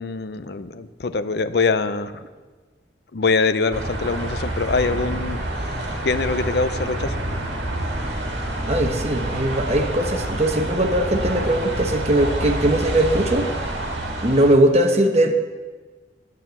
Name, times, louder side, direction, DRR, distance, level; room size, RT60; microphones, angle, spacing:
voice 1, 0.0-2.2 3.1-5.4 6.0-7.1, left 4 dB, 55° left, 11 dB, 0.5 m, -23 dB
sound 1, 3.7-14.5, right 1 dB, 65° right, 1.9 m, -27 dB
voice 2, 8.7-13.5 14.2-15.4, right 1 dB, 35° right, 4 dB, 1.0 m, -20 dB
9.7 x 7.9 x 7.1 m, 1.4 s
head